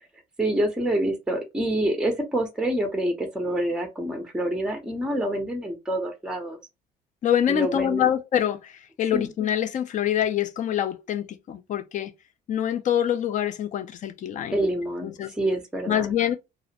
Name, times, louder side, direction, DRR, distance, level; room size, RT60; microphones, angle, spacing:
voice 1, 0.4-6.6 7.5-8.1 9.1-9.3 14.5-16.1, right 1 dB, 5° right, 0.5 m, -27 dB
voice 2, 7.2-12.1 12.5-14.6 15.0-15.3 15.9-16.4, left 10 dB, 45° left, 0.4 m, -25 dB
2.4 x 2.1 x 2.7 m
cardioid pair, 110°, 17 cm